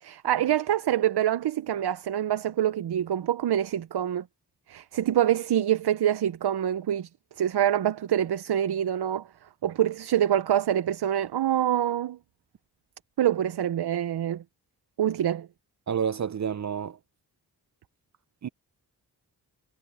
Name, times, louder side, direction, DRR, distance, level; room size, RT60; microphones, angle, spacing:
voice 1, 0.0-4.2 4.7-7.1 7.4-9.3 9.6-12.2 13.2-14.4 15.0-15.5, right 11 dB, 75° right, 0.8 m, -25 dB
voice 2, 15.9-17.0 18.4-18.5, right 7 dB, 45° right, 0.6 m, -29 dB
cardioid pair, 50°, 40 cm